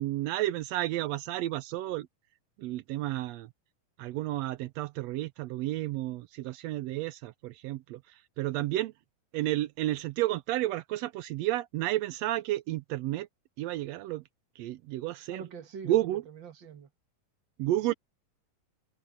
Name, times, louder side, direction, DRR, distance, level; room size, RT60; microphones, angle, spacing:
voice 1, 0.0-2.1 2.6-3.5 4.0-8.9 9.3-13.3 13.6-14.2 14.6-15.4 15.8-16.2 17.6-17.9, right 15 dB, 85° right, 1.5 m, -31 dB
voice 2, 15.3-16.9 17.8-17.9, right 6 dB, 40° right, 2.0 m, -44 dB
omnidirectional pair, 3.7 m